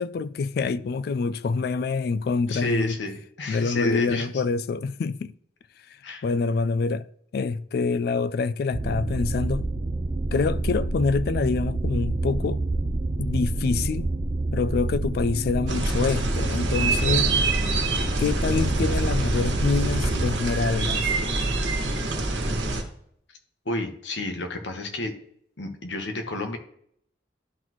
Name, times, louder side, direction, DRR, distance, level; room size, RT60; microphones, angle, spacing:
voice 1, 0.0-3.0 3.5-5.3 6.2-7.0 7.3-9.7 10.3-12.6 13.2-14.1 14.5-17.3 18.2-21.0, left 4 dB, 55° left, 0.3 m, -26 dB
voice 2, 2.5-4.3 6.0-6.2 23.6-25.1 25.6-26.6, left 2 dB, 85° left, 1.2 m, -30 dB
sound 1, 8.7-20.4, right 2 dB, 30° right, 0.4 m, -28 dB
sound 2, 15.7-22.8, right 3 dB, 80° right, 1.3 m, -26 dB
11.5 x 4.0 x 3.0 m
head